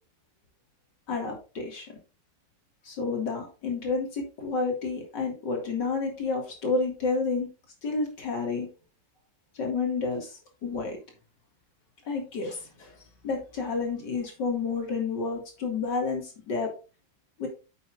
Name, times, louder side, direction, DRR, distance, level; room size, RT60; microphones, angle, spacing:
voice 1, 1.1-1.9 2.8-7.5 7.8-8.7 9.5-11.0 12.0-12.9 13.2-16.7 17.4-17.5, left 4 dB, 70° left, 1 dB, 2.7 m, -30 dB
9.6 x 7.1 x 2.5 m, 0.32 s
omnidirectional pair, 2.0 m